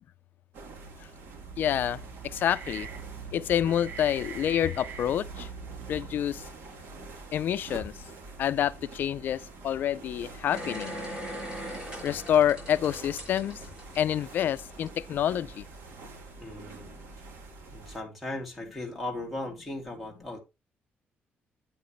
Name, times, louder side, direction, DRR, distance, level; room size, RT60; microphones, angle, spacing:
sound 1, 0.5-18.0, right 3 dB, 80° right, 2.7 m, -46 dB
sound 2, 1.2-6.5, right 6 dB, 55° right, 1.1 m, -43 dB
voice 1, 1.6-2.9 3.3-5.5 5.9-6.4 7.3-7.9 8.4-11.0 12.0-13.6 14.0-15.6, left 10 dB, 55° left, 0.4 m, -27 dB
sound 3, 10.5-14.9 15.3-15.4, equal, 25° right, 5.8 m, -40 dB
voice 2, 16.4-16.9 17.7-20.4, left 1 dB, ahead, 2.3 m, -37 dB
8.6 x 7.7 x 3.1 m
cardioid pair, 170°, 4 cm